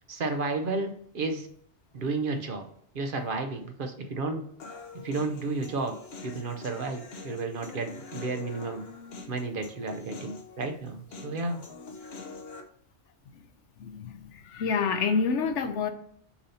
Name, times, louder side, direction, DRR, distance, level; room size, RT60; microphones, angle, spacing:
voice 1, 0.1-1.5 1.9-2.7 2.9-4.4 5.0-5.9 6.2-8.8 9.3-11.6, right 3 dB, 55° right, 5 dB, 0.8 m, -32 dB
Human voice, 4.6-12.6, left 3 dB, 60° left, 1.0 m, -45 dB
voice 2, 13.8-15.9, left 5 dB, 85° left, 8 dB, 1.0 m, -28 dB
6.9 x 2.8 x 5.5 m, 0.64 s
omnidirectional pair, 1.2 m